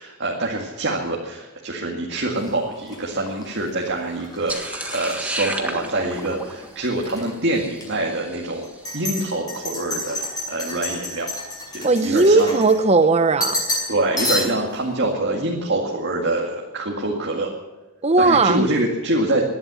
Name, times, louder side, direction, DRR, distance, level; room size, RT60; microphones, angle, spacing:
voice 1, 0.0-8.7 8.9-11.3 11.7-12.5 13.9-17.5 18.2-19.4, right 2 dB, 55° right, 2.1 m, -25 dB
sound 1, 2.4-6.3 6.6-7.3 7.8-7.9 8.6-13.0 13.4-13.9 14.2-14.8, left 1 dB, 15° left, 5.7 m, -30 dB
sound 2, 4.5-8.8, right 1 dB, 5° right, 1.5 m, -32 dB
voice 2, 11.8-13.6 18.0-18.6, right 3 dB, 30° right, 0.8 m, -17 dB
19.5 x 12.0 x 6.3 m
head